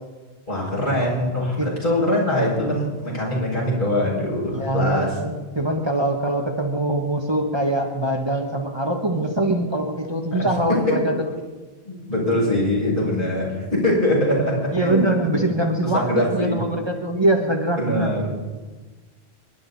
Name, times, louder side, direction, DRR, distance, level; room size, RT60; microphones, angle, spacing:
voice 1, 0.5-5.2 10.3-11.1 11.8-15.4 15.8-16.6 17.7-18.4, left 1 dB, 55° left, -5 dB, 6.8 m, -23 dB
voice 2, 4.5-11.1 14.7-18.2, right 1 dB, 25° right, 1 dB, 1.6 m, -23 dB
28.5 x 11.5 x 4.2 m, 1.3 s
omnidirectional pair, 1.0 m